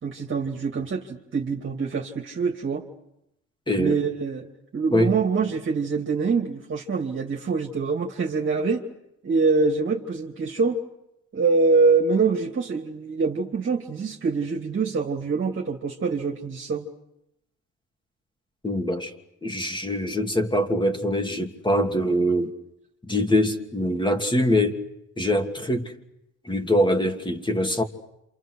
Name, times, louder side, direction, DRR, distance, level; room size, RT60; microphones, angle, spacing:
voice 1, 0.0-2.8 3.8-8.8 9.2-10.8 11.3-16.9, right 4 dB, 40° right, 0 dB, 2.8 m, -24 dB
voice 2, 3.7-4.0 4.9-5.2 18.6-19.1 19.4-22.5 23.0-24.8 25.2-25.9 26.4-27.8, left 1 dB, 15° left, 4 dB, 2.9 m, -23 dB
28.0 x 27.5 x 6.5 m, 0.86 s
cardioid pair, 90°, 30 cm